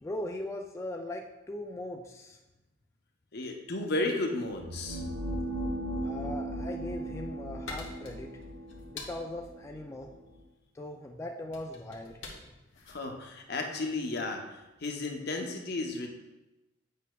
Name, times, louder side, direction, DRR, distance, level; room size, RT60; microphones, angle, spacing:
voice 1, 0.0-2.4 6.0-8.3 8.9-10.1 10.7-12.2, left 1 dB, 15° left, 1 dB, 0.3 m, -39 dB
voice 2, 3.3-5.0 12.9-14.4 14.8-16.1, left 2 dB, 60° left, 2 dB, 0.8 m, -33 dB
sound 1, 4.4-10.4, right 1 dB, 55° right, 0.7 m, -37 dB
sound 2, 7.0-14.2, left 3 dB, 85° left, 1.1 m, -48 dB
8.3 x 5.3 x 2.3 m, 1.0 s
head